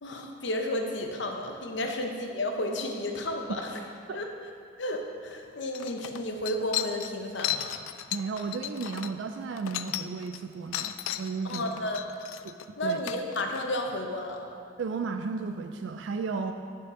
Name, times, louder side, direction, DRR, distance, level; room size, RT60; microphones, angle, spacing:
voice 1, 0.0-3.8 4.1-4.3 4.8-7.7 11.4-12.0 12.8-14.5, left 1 dB, 60° left, 3 dB, 0.8 m, -32 dB
sound 1, 5.3-5.4 5.7-10.4 10.7-13.7, left 12 dB, 90° left, 0.3 m, -35 dB
voice 2, 8.1-11.7 12.4-12.5 12.8-13.0 14.8-16.5, right 4 dB, 65° right, 6 dB, 0.3 m, -34 dB
9.9 x 4.9 x 4.8 m, 2.5 s
head